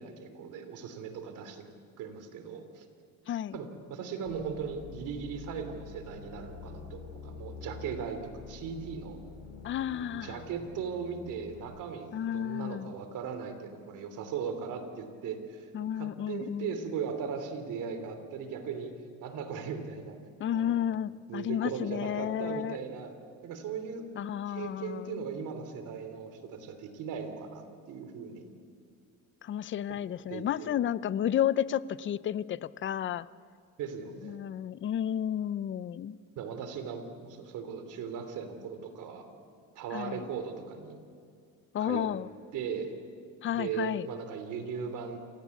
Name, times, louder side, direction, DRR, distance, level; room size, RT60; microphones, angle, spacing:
voice 1, 0.0-1.6 2.0-2.8 3.5-9.2 10.1-15.7 16.0-20.2 20.5-20.8 21.3-23.2 23.4-24.1 24.4-28.5 30.0-30.8 33.8-34.4 36.4-39.3 39.7-41.0 41.8-42.1 42.5-42.9 43.5-45.2, right 6 dB, 65° right, 8 dB, 3.2 m, -38 dB
voice 2, 3.3-3.6 9.6-10.4 12.1-12.9 15.7-16.7 20.4-22.8 24.2-25.2 29.4-33.3 34.2-36.2 39.9-40.3 41.7-42.3 43.4-44.1, left 10 dB, 35° left, 17 dB, 0.6 m, -32 dB
sound 1, 4.2-11.6, left 4 dB, 65° left, 6.9 m, -47 dB
27.5 x 17.5 x 8.4 m, 2.2 s
cardioid pair, 125°, 33 cm